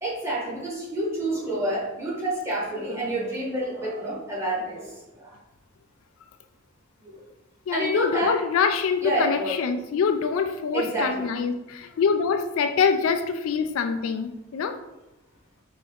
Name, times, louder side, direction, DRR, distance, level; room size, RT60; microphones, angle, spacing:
voice 1, 0.0-5.4 7.0-7.3 7.7-8.4 9.0-9.5 10.7-11.3, right 1 dB, 15° right, -5 dB, 1.1 m, -28 dB
voice 2, 7.7-14.8, left 6 dB, 70° left, 8 dB, 0.3 m, -25 dB
4.6 x 2.5 x 3.4 m, 0.97 s
head